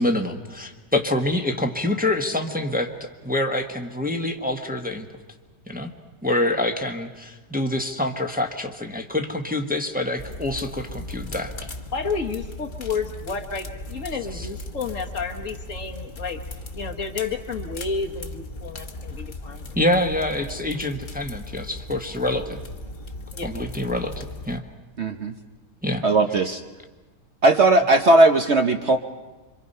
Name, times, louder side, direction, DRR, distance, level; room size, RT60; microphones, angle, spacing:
voice 1, 0.0-2.9 3.2-5.1 5.7-5.9 6.2-11.7 14.3-14.5 19.7-22.6 23.4-24.6 25.8-26.0, left 1 dB, 5° right, 3 dB, 1.1 m, -26 dB
sound 1, 10.2-24.6, left 2 dB, 30° left, 1.3 m, -37 dB
voice 2, 11.9-16.4 16.7-19.7 23.3-23.5, left 5 dB, 50° left, 3 dB, 1.5 m, -31 dB
voice 3, 25.0-25.3 26.0-26.6 27.4-29.0, right 2 dB, 50° right, 4 dB, 1.0 m, -17 dB
26.5 x 25.0 x 5.5 m, 1.2 s
omnidirectional pair, 1.8 m